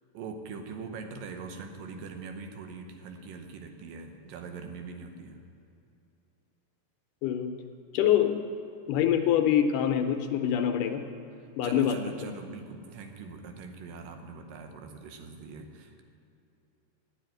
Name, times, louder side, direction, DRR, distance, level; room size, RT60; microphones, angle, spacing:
voice 1, 0.1-5.4 11.4-16.0, right 4 dB, 90° right, 5 dB, 2.6 m, -42 dB
voice 2, 7.2-7.5 7.9-8.3 8.9-11.0 11.6-12.0, left 10 dB, 80° left, 5 dB, 2.2 m, -25 dB
9.6 x 7.7 x 9.0 m, 2.7 s
omnidirectional pair, 3.9 m